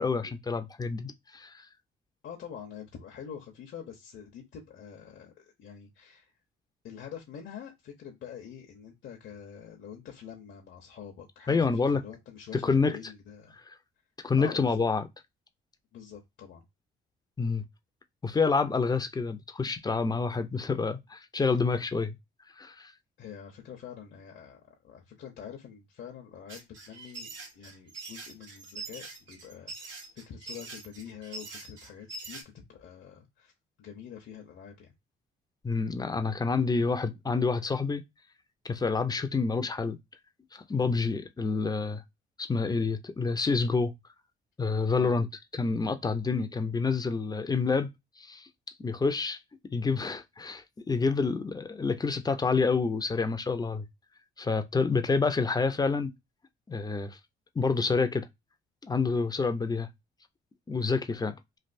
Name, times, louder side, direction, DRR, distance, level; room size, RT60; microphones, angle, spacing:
voice 1, 0.0-1.5 11.5-12.0 12.5-13.0 14.2-15.1 17.4-17.6 18.2-22.2 22.6-22.9 35.6-38.0 38.6-40.0 40.5-42.0 42.4-43.9 44.6-45.3 45.5-47.9 48.2-48.5 48.8-49.4 49.7-53.8 54.4-56.1 56.7-57.2 57.6-58.3 58.8-59.9 60.7-61.4, left 4 dB, 20° left, 0.5 m, -28 dB
voice 2, 2.2-6.3 6.8-13.5 14.4-14.8 15.9-16.6 23.2-33.5 33.8-34.9 45.0-45.2, left 8 dB, 65° left, 0.8 m, -46 dB
sound 1, 26.5-32.4, right 3 dB, 75° right, 1.3 m, -43 dB
3.3 x 2.5 x 2.5 m
cardioid pair, 90°, 20 cm